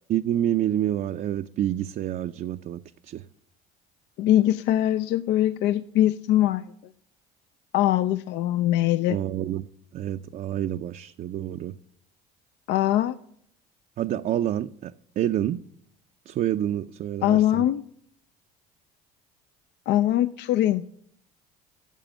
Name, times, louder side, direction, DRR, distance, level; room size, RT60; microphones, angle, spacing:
voice 1, 0.1-3.3 9.1-11.8 14.0-15.6 16.3-17.7, right 11 dB, 50° right, 0.5 m, -28 dB
voice 2, 4.2-6.6 7.7-9.2 12.7-13.2 17.2-17.8 19.9-20.8, left 13 dB, 65° left, 0.5 m, -22 dB
9.1 x 6.9 x 8.8 m
supercardioid pair, 80°, 19 cm